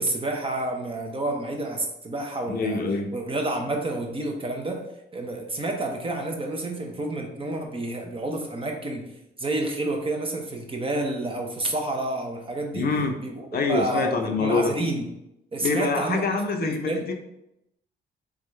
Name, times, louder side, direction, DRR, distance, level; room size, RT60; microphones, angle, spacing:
voice 1, 0.0-2.8 3.1-4.8 5.1-9.0 9.4-12.9 13.2-15.0 15.5-17.1, right 2 dB, 25° right, 2 dB, 0.8 m, -29 dB
voice 2, 2.5-3.1 12.7-13.1 13.5-14.7 15.6-17.1, left 4 dB, 50° left, 4 dB, 0.6 m, -25 dB
3.7 x 3.5 x 3.2 m, 0.84 s
cardioid pair, 90°, 20 cm